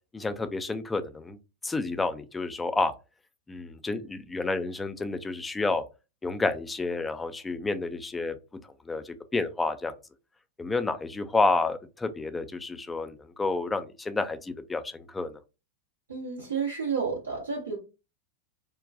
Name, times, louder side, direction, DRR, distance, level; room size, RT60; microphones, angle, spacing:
voice 1, 0.1-1.4 1.6-2.9 3.5-5.8 6.2-8.4 8.9-9.9 10.6-15.4, left 3 dB, 10° left, 11 dB, 0.4 m, -30 dB
voice 2, 16.1-17.8, right 5 dB, 70° right, -3 dB, 0.8 m, -31 dB
3.7 x 2.2 x 2.5 m, 0.29 s
figure-of-eight pair, 90°, 0 cm